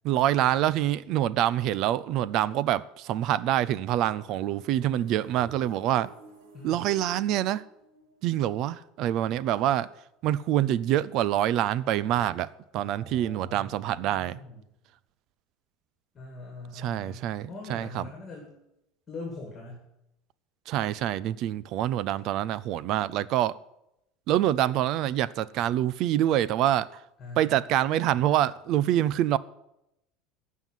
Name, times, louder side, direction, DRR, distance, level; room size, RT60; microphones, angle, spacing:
voice 1, 0.0-6.1 6.6-7.6 8.2-9.9 10.2-14.4 16.8-18.0 20.7-23.6 24.3-26.9 27.4-29.4, right 12 dB, 45° right, 0.4 m, -26 dB
sound 1, 3.7-9.5, right 1 dB, 75° right, 3.3 m, -53 dB
voice 2, 6.5-6.9 12.8-14.6 16.1-18.6 19.1-19.9 27.2-27.6, left 2 dB, 20° left, 2.4 m, -42 dB
15.0 x 5.7 x 9.1 m
cardioid pair, 170°, 0 cm